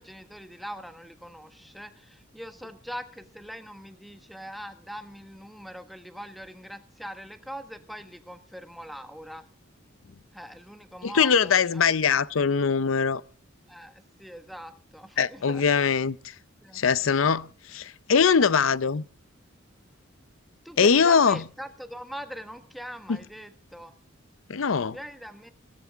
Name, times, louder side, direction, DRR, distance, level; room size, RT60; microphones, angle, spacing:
voice 1, 0.0-9.5 10.3-11.9 13.7-15.6 16.6-16.8 20.6-23.9 24.9-25.5, equal, ahead, 1.4 m, -42 dB
voice 2, 11.0-13.2 15.2-16.2 16.7-19.0 20.8-21.4 24.5-25.0, left 6 dB, 85° left, 0.6 m, -22 dB
17.0 x 15.5 x 3.6 m
head